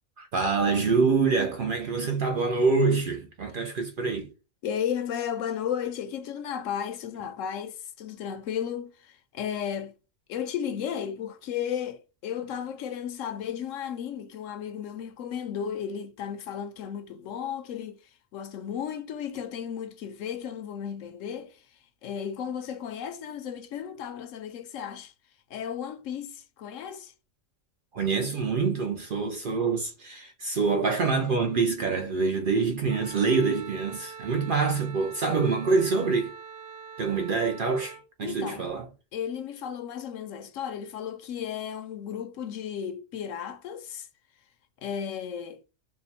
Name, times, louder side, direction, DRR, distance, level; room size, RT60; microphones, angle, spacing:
voice 1, 0.2-4.3 27.9-36.3 37.0-38.9, right 4 dB, 55° right, 0.6 m, -26 dB
voice 2, 4.6-9.9 10.3-18.0 18.3-21.6 22.0-25.1 25.5-27.1 38.2-38.7 39.1-44.1 44.8-45.6, left 8 dB, 80° left, 1.0 m, -34 dB
Wind instrument woodwind instrument, 32.9-38.0, right 5 dB, 90° right, 1.1 m, -44 dB
3.7 x 2.2 x 4.1 m
omnidirectional pair, 1.3 m